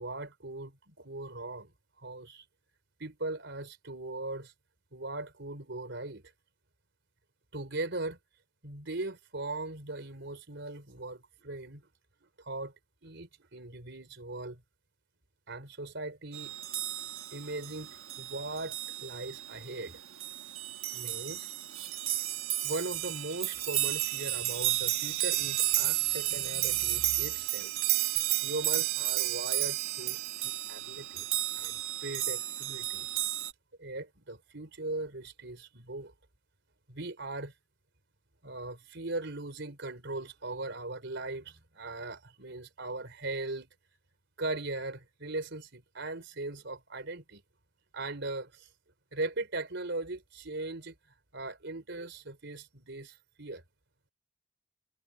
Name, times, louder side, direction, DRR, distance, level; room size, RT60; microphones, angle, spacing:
voice 1, 0.0-1.7 2.0-2.4 3.0-4.5 4.9-6.3 7.5-8.2 8.6-11.8 12.4-12.7 13.0-14.6 15.5-16.5 17.3-20.0 20.9-21.5 22.6-27.7 28.4-31.3 31.5-33.1 33.8-36.1 36.9-37.5 38.4-43.7 44.4-47.4 47.9-48.7 49.1-50.9 51.3-53.6, right 2 dB, 55° right, 4.4 m, -39 dB
sound 1, 16.3-33.5, right 15 dB, 75° right, 1.4 m, -32 dB
head